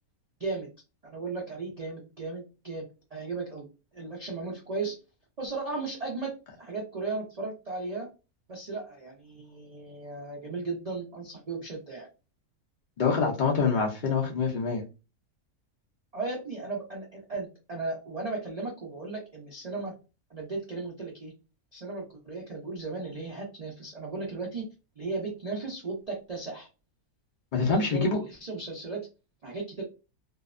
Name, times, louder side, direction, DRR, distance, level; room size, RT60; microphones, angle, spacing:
voice 1, 1.0-3.7 3.9-5.0 5.4-6.3 6.6-8.1 8.5-12.1 16.1-19.9 20.3-21.3 21.7-24.7 25.0-26.7 27.7-29.1 29.4-29.8, right 3 dB, 90° right, -2 dB, 0.3 m, -36 dB
voice 2, 13.0-14.8 27.5-28.2, left 4 dB, 80° left, 0 dB, 0.4 m, -25 dB
2.6 x 2.0 x 2.4 m, 0.30 s
omnidirectional pair, 1.6 m